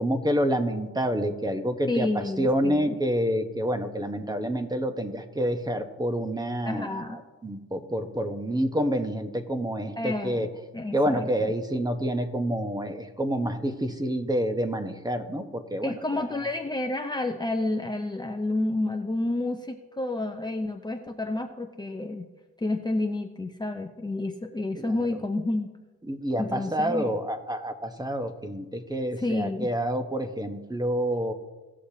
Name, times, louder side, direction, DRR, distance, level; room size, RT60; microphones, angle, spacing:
voice 1, 0.0-10.5 10.9-16.4 24.8-25.2 26.1-31.3, equal, 15° right, 7 dB, 0.9 m, -28 dB
voice 2, 1.9-3.0 6.7-7.2 10.0-10.5 10.7-11.5 15.8-22.3 22.6-25.7 26.4-27.0 29.2-29.7, left 2 dB, 15° left, 4 dB, 0.7 m, -30 dB
17.5 x 6.6 x 2.8 m, 1.2 s
cardioid pair, 90°, 30 cm